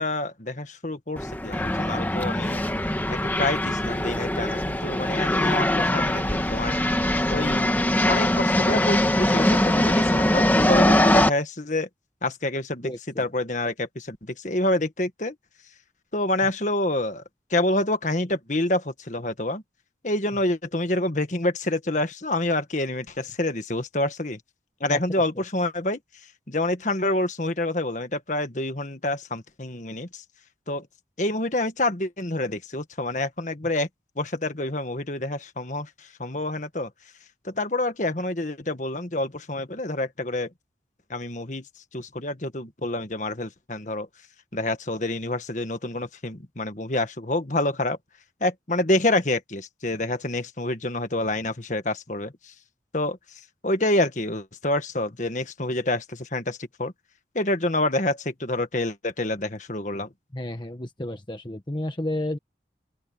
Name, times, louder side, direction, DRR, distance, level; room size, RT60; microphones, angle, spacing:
voice 1, 0.0-2.6 3.1-6.8 7.3-7.8 8.0-11.9 12.2-12.9 13.2-15.4 16.1-17.2 17.5-19.6 20.0-24.4 24.8-26.0 26.5-30.2 30.7-30.9 31.2-33.9 34.2-36.9 37.4-40.5 41.1-41.7 41.9-44.1 44.5-48.0 48.4-52.5 52.9-56.9 57.4-60.1, left 2 dB, 45° left, 1.6 m, -27 dB
sound 1, 1.2-11.3, left 1 dB, 10° left, 1.2 m, -22 dB
voice 2, 12.8-13.2 24.9-25.0 25.4-25.5 60.3-62.4, left 1 dB, 25° left, 1.4 m, -31 dB
open air
head